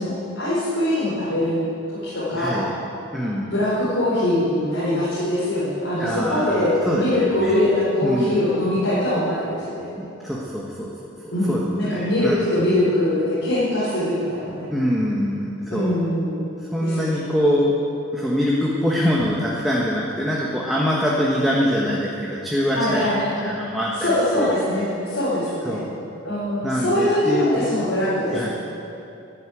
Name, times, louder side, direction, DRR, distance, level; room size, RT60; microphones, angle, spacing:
voice 1, 0.0-1.7 1.9-2.7 3.5-9.9 11.3-14.7 15.7-16.5 16.8-17.3 22.7-23.4 23.9-25.8 26.2-28.5, left 1 dB, 70° left, -9 dB, 4.3 m, -22 dB
voice 2, 2.3-2.7 3.1-3.5 6.0-7.6 8.0-8.4 10.0-10.9 11.2-12.5 14.7-15.9 16.7-17.7 18.1-24.5 25.6-25.9 26.6-27.6 28.3-28.5, equal, ahead, -5 dB, 1.4 m, -24 dB
12.0 x 12.0 x 8.6 m, 2.8 s
head